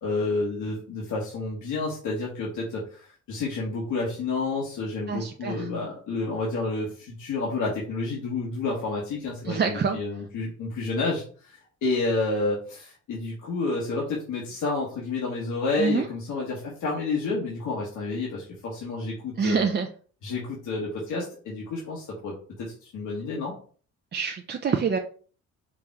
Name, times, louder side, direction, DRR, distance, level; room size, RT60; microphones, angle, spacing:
voice 1, 0.0-19.6 20.2-22.3 22.6-23.5, left 3 dB, 80° left, -4 dB, 1.5 m, -30 dB
voice 2, 5.1-5.7 9.4-10.0 15.8-16.1 19.4-19.9 24.1-25.0, right 5 dB, 35° right, 4 dB, 0.5 m, -26 dB
4.9 x 2.8 x 3.6 m, 0.42 s
cardioid pair, 90°, 30 cm